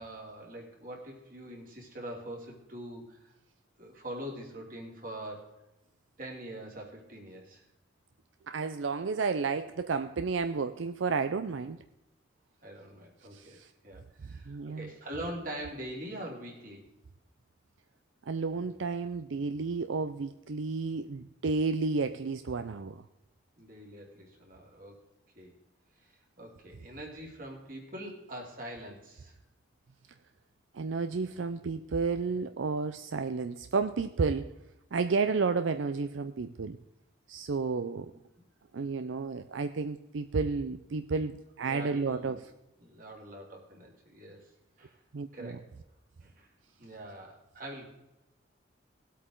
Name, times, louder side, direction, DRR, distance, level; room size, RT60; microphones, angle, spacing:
voice 1, 0.0-3.3 3.8-5.5 6.2-7.6 12.6-13.6 13.8-16.9 23.6-25.1 25.3-25.5 26.4-29.3 38.1-38.2 41.6-42.4 42.8-44.5 44.8-45.0 45.3-45.7 46.2-46.5 46.8-47.9, right 1 dB, 45° right, -1 dB, 2.9 m, -43 dB
voice 2, 8.5-11.8 13.3-13.7 14.5-14.9 18.3-23.0 30.7-34.5 34.9-36.8 37.3-38.1 38.7-42.4 45.1-45.5, right 4 dB, 80° right, 10 dB, 0.5 m, -31 dB
19.0 x 8.4 x 3.8 m, 0.92 s
head